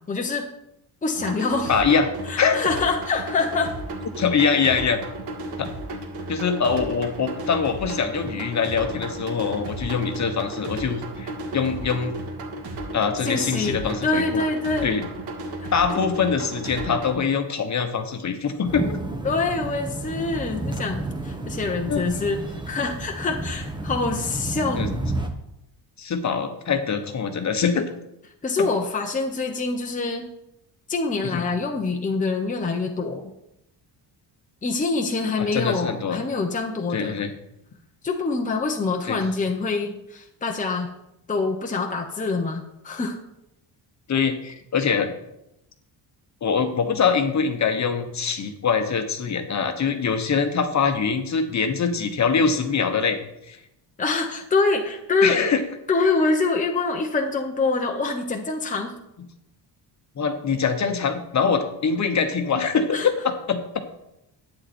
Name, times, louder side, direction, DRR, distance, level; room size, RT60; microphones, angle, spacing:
voice 1, 0.1-0.5 1.0-1.7 2.3-3.7 13.2-14.9 15.6-15.7 19.2-24.8 28.4-30.2 30.9-33.3 34.6-37.2 38.0-40.9 41.3-43.2 54.0-55.4 55.9-58.9 62.9-63.1, left 3 dB, 15° left, 2 dB, 1.0 m, -25 dB
sound 1, 1.1-17.1, right 1 dB, 65° right, 2.3 m, -34 dB
voice 2, 1.7-2.6 4.2-5.0 5.6-5.7 6.3-12.2 12.9-14.4 14.8-15.1 15.7-19.0 21.9-22.0 24.8-24.9 26.0-27.9 28.6-28.7 31.2-31.4 35.4-36.2 36.9-37.3 39.1-39.2 44.1-45.1 46.4-53.2 53.5-53.6 55.2-55.6 60.2-63.8, left 6 dB, 40° left, 7 dB, 1.3 m, -23 dB
sound 2, 18.6-25.3, right 2 dB, 10° right, 1.2 m, -31 dB
11.0 x 9.2 x 4.4 m, 0.85 s
cardioid pair, 145°, 44 cm